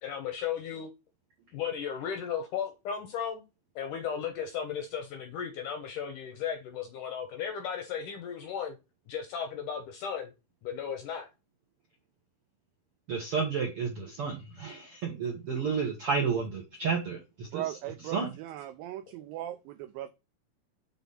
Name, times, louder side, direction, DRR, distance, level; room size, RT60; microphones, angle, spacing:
voice 1, 0.0-0.9 1.5-3.4 3.8-8.8 9.1-10.3 10.6-11.3, left 8 dB, 75° left, 1.9 m, -35 dB
voice 2, 13.1-17.6 18.1-18.3, right 5 dB, 70° right, 1.3 m, -31 dB
voice 3, 17.5-20.1, right 13 dB, 90° right, 2.0 m, -38 dB
6.8 x 4.1 x 5.5 m
omnidirectional pair, 4.7 m